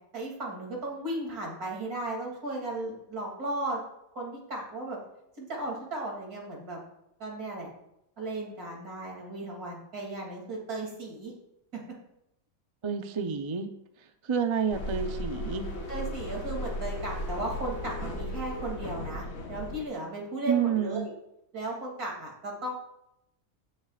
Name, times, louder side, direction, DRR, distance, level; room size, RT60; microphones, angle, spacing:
voice 1, 0.1-3.8 4.1-5.0 5.4-6.8 7.2-7.7 8.2-11.3 11.7-11.8 15.9-21.1 21.5-22.7, right 2 dB, 90° right, -1 dB, 3.4 m, -35 dB
voice 2, 12.8-13.7 14.2-15.7 20.5-21.1, right 7 dB, 30° right, 6 dB, 0.5 m, -29 dB
sound 1, 14.7-19.8, left 1 dB, 65° left, 1.8 m, -35 dB
15.0 x 10.0 x 2.5 m, 0.80 s
omnidirectional pair, 1.5 m